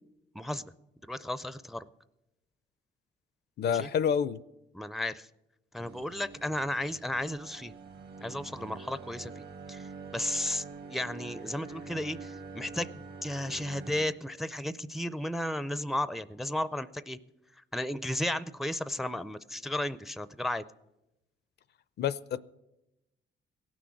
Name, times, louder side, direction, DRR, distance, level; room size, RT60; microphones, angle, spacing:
voice 1, 0.3-0.7 1.1-1.8 3.6-3.9 4.7-5.3 5.7-7.7 8.2-10.6 10.9-17.2 17.7-20.7, left 1 dB, ahead, 0.4 m, -34 dB
voice 2, 3.6-4.4 22.0-22.4, left 8 dB, 55° left, 0.5 m, -28 dB
sound 1, 5.8-14.1, right 4 dB, 55° right, 1.2 m, -46 dB
16.5 x 6.2 x 8.3 m
cardioid pair, 85°, 20 cm